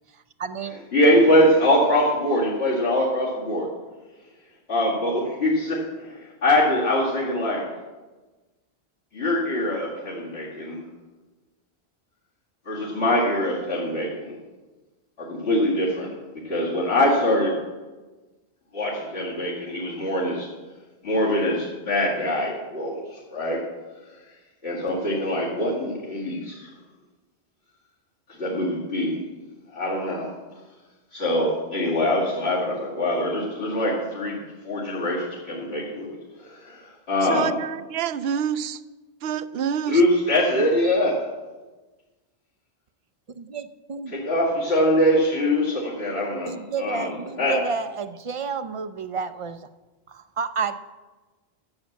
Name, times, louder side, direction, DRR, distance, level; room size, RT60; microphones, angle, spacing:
voice 1, 0.4-0.8 43.4-44.1 46.5-49.6 50.1-50.8, right 5 dB, 45° right, 0.4 m, -30 dB
voice 2, 0.9-3.7 4.7-7.6 9.1-10.8 12.7-14.3 15.2-16.1 16.4-17.6 18.7-20.5 21.0-23.6 24.6-26.7 28.4-29.2 29.7-30.3 31.1-36.2 36.4-37.5 39.9-41.2 44.1-47.6, left 1 dB, 75° left, 2.6 m, -23 dB
voice 3, 37.3-38.8 39.2-40.0, right 8 dB, 70° right, 0.8 m, -27 dB
11.5 x 7.3 x 7.2 m
omnidirectional pair, 1.1 m